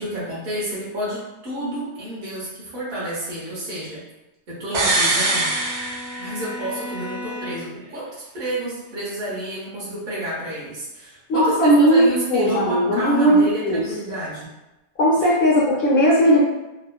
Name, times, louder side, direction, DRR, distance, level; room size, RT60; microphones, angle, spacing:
voice 1, 0.0-4.0 4.5-5.5 6.2-14.5 15.2-15.3, right 1 dB, 60° right, -7 dB, 1.1 m, -30 dB
Bowed string instrument, 4.7-7.9, left 1 dB, 25° left, 0.5 m, -36 dB
sound 1, 4.7-6.7 7.0-7.1, right 2 dB, 90° right, 0.9 m, -22 dB
voice 2, 11.3-12.0 12.3-13.8 15.0-16.4, equal, 60° left, -5 dB, 0.8 m, -17 dB
3.0 x 2.1 x 2.2 m, 0.98 s
omnidirectional pair, 1.1 m